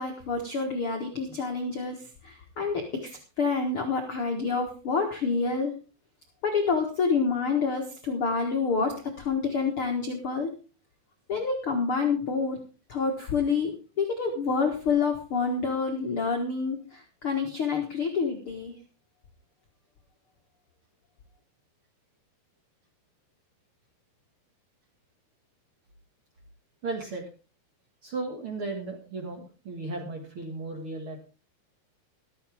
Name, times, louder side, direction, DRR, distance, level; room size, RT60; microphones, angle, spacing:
voice 1, 0.0-5.7 6.4-10.5 11.3-12.6 12.9-13.7 14.0-18.8, left 5 dB, 90° left, 2 dB, 1.2 m, -28 dB
voice 2, 26.8-27.2 28.0-31.3, right 3 dB, 50° right, 2 dB, 1.6 m, -35 dB
14.0 x 13.5 x 3.5 m, 0.34 s
omnidirectional pair, 5.2 m